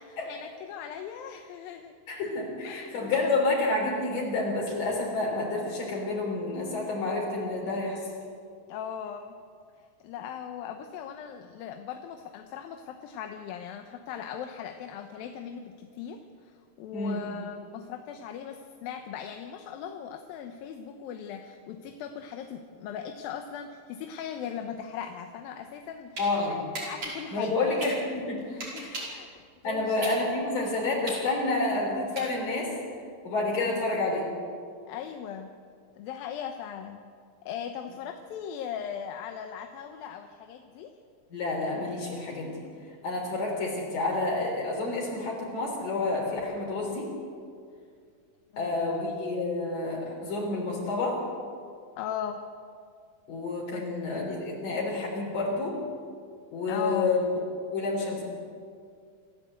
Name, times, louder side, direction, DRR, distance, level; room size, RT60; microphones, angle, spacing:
voice 1, 0.0-1.9 2.6-3.6 8.7-9.4 9.8-27.5 28.5-30.0 33.7-33.9 34.9-35.5 36.0-37.0 37.4-40.9 48.5-49.0 52.0-52.4 53.7-53.9 56.7-57.1, left 8 dB, 90° left, 6 dB, 2.8 m, -39 dB
voice 2, 2.1-8.0 16.9-17.2 26.2-26.6 27.3-28.4 28.8-29.0 29.6-32.7 33.2-34.3 41.3-42.6 43.0-47.1 48.6-51.2 53.3-55.8 56.5-57.3 57.7-58.2, left 2 dB, 70° left, -3 dB, 5.4 m, -29 dB
sound 1, 25.7-26.3 26.7-29.2 29.6-32.7, right 2 dB, 45° right, 6.1 m, -38 dB
28.0 x 14.0 x 8.1 m, 2.2 s
omnidirectional pair, 4.0 m